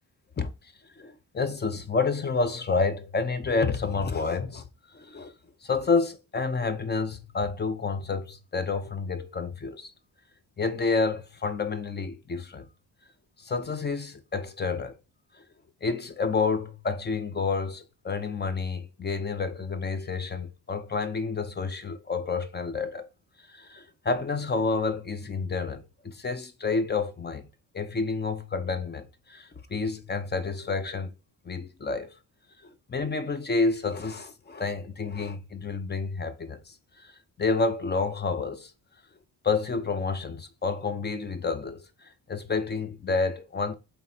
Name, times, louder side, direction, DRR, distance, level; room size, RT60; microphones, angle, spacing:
voice 1, 1.0-4.6 4.9-5.3 5.6-9.9 10.6-12.7 13.4-15.0 15.8-23.1 23.5-27.4 27.7-31.1 31.5-32.1 32.9-38.7 39.4-43.7, left 4 dB, 25° left, 0.6 m, -29 dB
3.6 x 3.4 x 4.2 m
cardioid pair, 105°, 41 cm